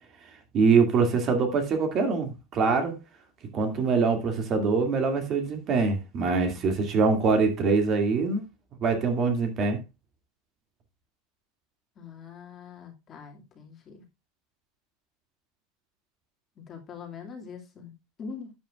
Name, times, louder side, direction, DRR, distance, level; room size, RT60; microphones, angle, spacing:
voice 1, 0.5-3.0 3.5-8.4 8.8-9.8, right 4 dB, 30° right, 2.4 m, -24 dB
voice 2, 12.0-14.0 16.7-17.9 18.2-18.5, left 5 dB, 25° left, 2.3 m, -43 dB
12.0 x 8.3 x 2.4 m
supercardioid pair, 155°, 0 cm